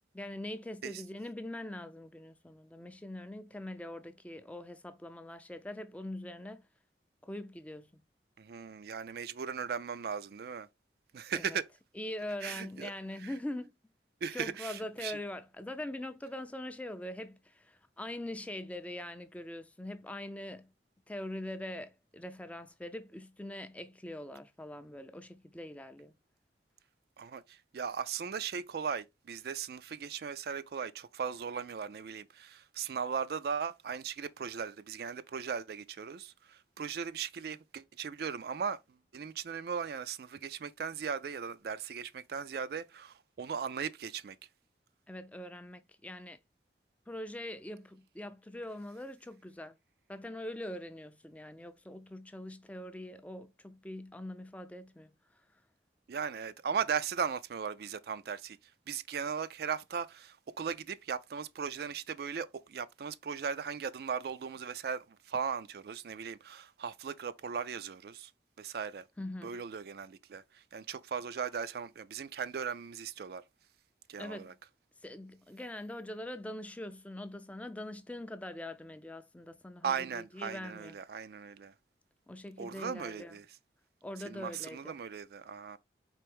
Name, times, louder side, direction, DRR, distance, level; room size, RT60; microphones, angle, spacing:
voice 1, 0.1-6.7 7.2-8.0 11.3-11.6 12.0-13.7 14.3-20.7 21.1-26.1 45.1-46.4 47.1-49.8 50.1-55.1 69.2-69.6 74.2-74.5 75.0-81.0 82.3-83.3 84.0-85.0, left 1 dB, 10° left, 0.4 m, -43 dB
voice 2, 8.4-10.7 11.1-11.7 12.4-12.9 13.2-13.3 14.2-15.2 27.2-38.8 39.1-44.4 56.1-58.6 58.9-68.3 68.6-69.0 69.4-73.4 74.1-74.5 79.8-81.7 82.6-83.5 84.3-85.8, right 6 dB, 60° right, 0.4 m, -38 dB
4.4 x 3.4 x 3.4 m
head